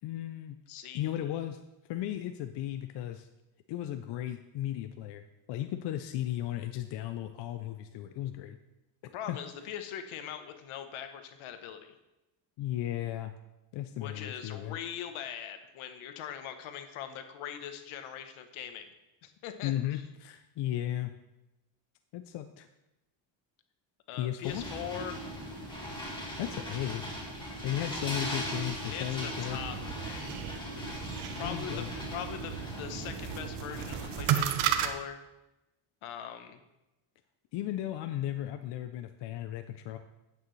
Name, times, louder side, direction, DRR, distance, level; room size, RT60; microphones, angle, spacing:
voice 1, 0.0-0.6 0.9-1.6 1.9-3.3 3.7-5.2 5.5-8.6 9.3-9.4 12.6-13.3 13.7-14.8 19.6-21.1 22.1-22.7 24.2-24.6 26.4-27.0 27.6-29.6 31.4-31.9 37.5-40.0, left 12 dB, 60° left, 8 dB, 0.6 m, -35 dB
voice 2, 0.7-1.3 9.1-12.0 14.0-18.9 19.2-20.0 24.1-25.2 28.9-30.4 31.4-35.2 36.0-36.6, left 9 dB, 75° left, 8 dB, 1.1 m, -41 dB
sound 1, 24.4-34.3, equal, 10° left, 2.0 m, -39 dB
sound 2, 29.5-34.9, right 10 dB, 85° right, 0.9 m, -34 dB
9.3 x 8.4 x 3.2 m, 0.96 s
cardioid pair, 145°, 49 cm